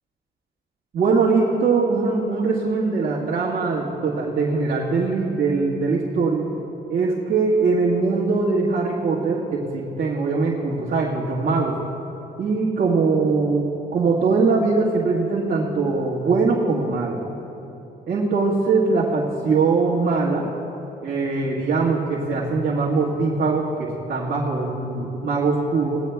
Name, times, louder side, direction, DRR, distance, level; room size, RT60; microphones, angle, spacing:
voice 1, 0.9-6.5 6.9-11.8 12.4-17.2 18.1-20.5 21.0-26.0, right 4 dB, 55° right, -6 dB, 1.7 m, -21 dB
18.0 x 15.5 x 2.3 m, 2.9 s
cardioid pair, 90°, 20 cm